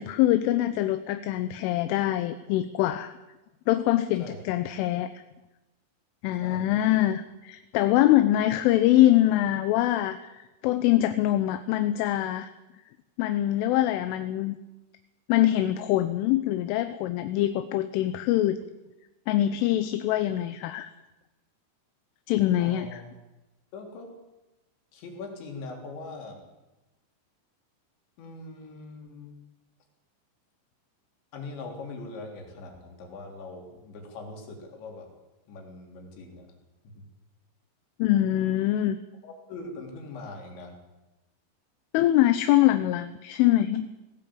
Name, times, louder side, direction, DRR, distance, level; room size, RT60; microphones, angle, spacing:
voice 1, 0.0-3.1 3.7-5.1 6.2-12.5 13.2-14.6 15.3-18.6 19.3-20.9 22.3-22.9 38.0-39.0 41.9-43.9, left 14 dB, 85° left, 10 dB, 3.3 m, -24 dB
voice 2, 6.4-6.8 22.6-23.1 23.7-24.1 24.9-26.4 28.2-29.4 31.3-35.1 35.5-36.5 37.0-37.1 39.2-40.7, left 3 dB, 65° left, 2 dB, 5.6 m, -41 dB
19.5 x 17.0 x 8.6 m, 1.0 s
omnidirectional pair, 5.6 m